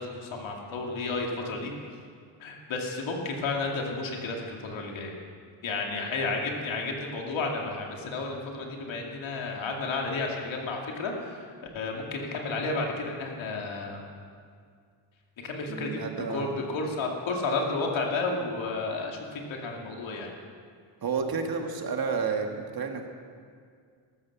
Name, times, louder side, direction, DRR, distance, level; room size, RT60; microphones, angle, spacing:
voice 1, 0.0-1.7 2.4-5.2 5.6-11.4 11.7-14.0 15.4-16.0 16.3-20.3, left 3 dB, 80° left, 1 dB, 2.5 m, -32 dB
voice 2, 15.7-16.6 21.0-23.1, right 5 dB, 50° right, 4 dB, 1.8 m, -31 dB
13.5 x 13.0 x 6.0 m, 2.1 s
cardioid pair, 105°, 46 cm